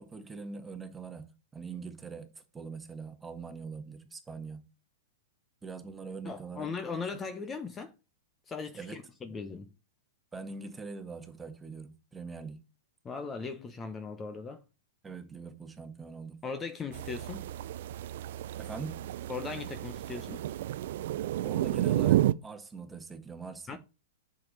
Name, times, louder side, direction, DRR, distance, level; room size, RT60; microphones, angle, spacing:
voice 1, 0.0-4.7 5.6-7.2 8.7-9.0 9.3-9.4 10.3-12.6 15.0-16.4 18.6-19.0 21.4-23.8, right 4 dB, 15° right, 1.5 m, -43 dB
voice 2, 6.2-7.9 8.5-9.7 13.0-14.6 16.4-17.5 19.3-20.5 23.7-23.8, left 5 dB, 20° left, 0.9 m, -38 dB
sound 1, 16.9-22.3, right 13 dB, 60° right, 0.4 m, -31 dB
7.6 x 6.3 x 4.1 m
hypercardioid pair, 110°, 0 cm